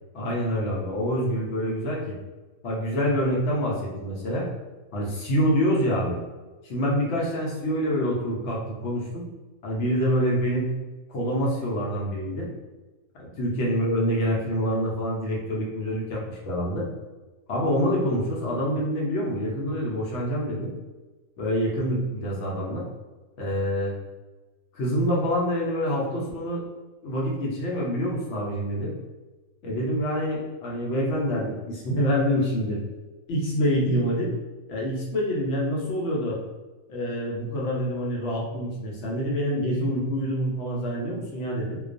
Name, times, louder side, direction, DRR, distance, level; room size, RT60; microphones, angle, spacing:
voice 1, 0.1-2.2 2.6-4.5 4.9-6.2 6.6-9.2 9.6-10.7 11.1-12.5 13.2-16.8 17.5-20.7 21.4-22.8 23.4-23.9 24.7-26.6 27.0-28.9 29.6-32.8 33.3-34.3 34.7-36.4 36.9-41.8, equal, 65° left, -3 dB, 0.8 m, -26 dB
2.3 x 2.2 x 2.4 m, 1.2 s
omnidirectional pair, 1.4 m